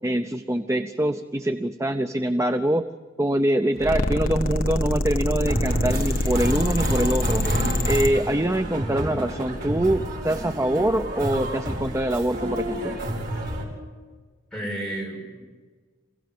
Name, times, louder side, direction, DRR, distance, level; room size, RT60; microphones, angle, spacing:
voice 1, 0.0-2.8 3.2-7.5 7.9-13.0, right 1 dB, 15° right, 8 dB, 0.6 m, -24 dB
sound 1, 3.8-8.1, left 1 dB, 45° left, 1.4 m, -25 dB
sound 2, 5.4-13.6, right 1 dB, 50° right, 6.3 m, -30 dB
voice 2, 7.2-7.7 14.5-15.4, right 1 dB, 5° left, -2 dB, 6.7 m, -32 dB
28.0 x 17.0 x 7.8 m, 1.4 s
head